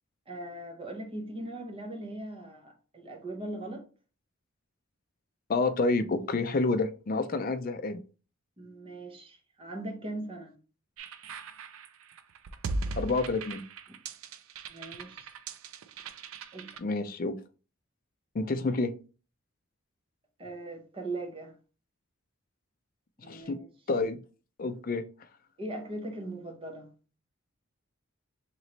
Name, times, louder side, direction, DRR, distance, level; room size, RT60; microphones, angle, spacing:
voice 1, 0.3-3.9 8.6-10.6 14.7-15.3 16.5-16.7 20.4-21.6 23.2-23.7 25.6-26.9, right 2 dB, 25° right, 0.8 m, -40 dB
voice 2, 5.5-8.0 13.0-13.6 16.8-17.4 18.3-18.9 23.3-23.6 23.9-24.2 24.6-25.0, left 3 dB, 40° left, 0.4 m, -28 dB
sound 1, 11.0-16.8, right 3 dB, 75° right, 0.4 m, -39 dB
3.1 x 3.0 x 3.9 m
head